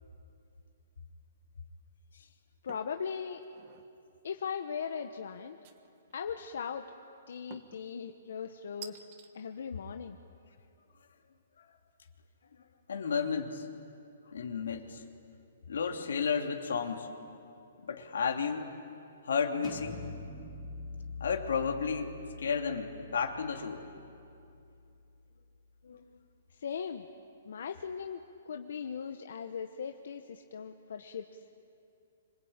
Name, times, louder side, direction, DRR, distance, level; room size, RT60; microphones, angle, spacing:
voice 1, 2.6-3.4 4.2-5.6 6.1-6.8 7.3-9.0 9.3-10.2 26.5-27.0 27.4-31.4, left 6 dB, 65° left, 6 dB, 1.1 m, -39 dB
sound 1, 2.7-3.0 3.4-3.9 5.6-6.2 7.5-7.9 8.8-9.3, right 10 dB, 30° right, 1.3 m, -50 dB
voice 2, 12.9-13.7 14.3-15.0 15.7-17.1 17.8-18.7 19.2-20.1 21.2-23.8 25.8-26.1, left 6 dB, 85° left, 4 dB, 2.9 m, -33 dB
sound 2, 19.6-25.3, left 3 dB, 10° left, 2.4 m, -46 dB
26.0 x 24.5 x 8.9 m, 2.6 s
hypercardioid pair, 175°, 0 cm